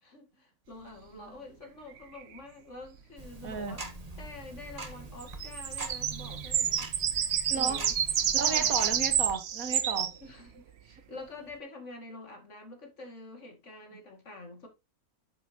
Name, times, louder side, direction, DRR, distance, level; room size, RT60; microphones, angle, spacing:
voice 1, 0.0-3.8 4.2-6.9 7.5-8.0 8.4-8.8 9.8-14.7, left 2 dB, 55° left, 2.4 m, -47 dB
voice 2, 0.9-1.4 3.4-3.8 7.5-7.8 8.3-10.1 10.9-11.0, right 5 dB, 70° right, 1.7 m, -34 dB
sound 1, 2.4-2.5 5.2-10.1, right 9 dB, 55° right, 0.8 m, -29 dB
Tick-tock, 3.2-9.3, right 2 dB, 25° right, 1.4 m, -43 dB
10.0 x 6.9 x 2.8 m
omnidirectional pair, 1.5 m